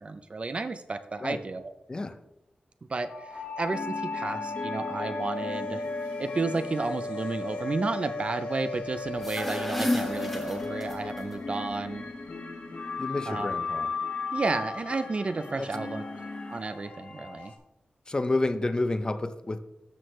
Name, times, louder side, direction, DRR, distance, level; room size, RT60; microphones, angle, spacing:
voice 1, 0.0-1.7 2.9-5.9 6.2-12.0 13.3-13.5 14.3-16.1 16.5-17.5, right 3 dB, 40° right, 0.5 m, -32 dB
sound 1, 3.1-11.9 12.8-17.5, left 4 dB, 70° left, 1.5 m, -36 dB
sound 2, 3.6-16.6, left 2 dB, 50° left, 1.1 m, -41 dB
sound 3, 9.1-11.2, left 1 dB, 5° left, 1.3 m, -31 dB
voice 2, 13.0-13.9 15.6-15.7 18.1-19.6, left 2 dB, 30° left, 0.5 m, -29 dB
12.5 x 6.2 x 3.1 m
wide cardioid pair, 125°, 3 cm